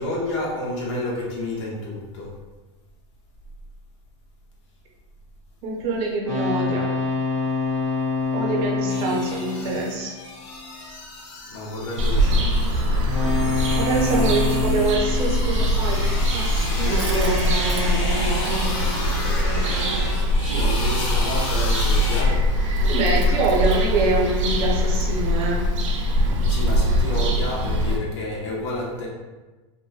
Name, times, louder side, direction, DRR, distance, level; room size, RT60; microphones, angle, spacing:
voice 1, 0.0-2.3 11.5-12.8 20.4-22.5 26.5-29.1, left 1 dB, 70° left, -4 dB, 1.0 m, -30 dB
voice 2, 5.6-6.9 8.3-10.1 13.8-17.4 22.9-25.7, right 3 dB, 40° right, -1 dB, 0.6 m, -25 dB
sound 1, 6.3-10.7 13.0-16.3, left 3 dB, 15° left, 0.9 m, -27 dB
sound 2, 8.9-22.2, left 2 dB, 45° left, 0.6 m, -33 dB
Bird vocalization bird call bird song, 12.0-28.0, equal, 90° right, 0.5 m, -22 dB
2.9 x 2.2 x 2.2 m, 1.2 s
supercardioid pair, 140°, 15 cm